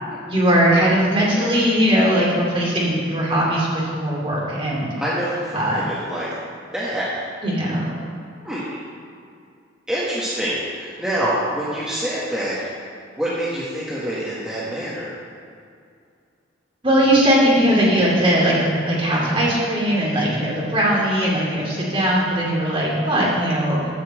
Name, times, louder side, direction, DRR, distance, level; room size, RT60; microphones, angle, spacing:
voice 1, 0.3-5.0 5.5-5.8 7.4-8.0 16.8-23.8, equal, 30° right, -5 dB, 2.7 m, -19 dB
voice 2, 5.0-6.3 6.7-7.1 8.4-8.6 9.9-12.7 13.2-15.1, right 1 dB, 5° right, -9 dB, 1.5 m, -26 dB
9.8 x 5.8 x 7.7 m, 2.3 s
head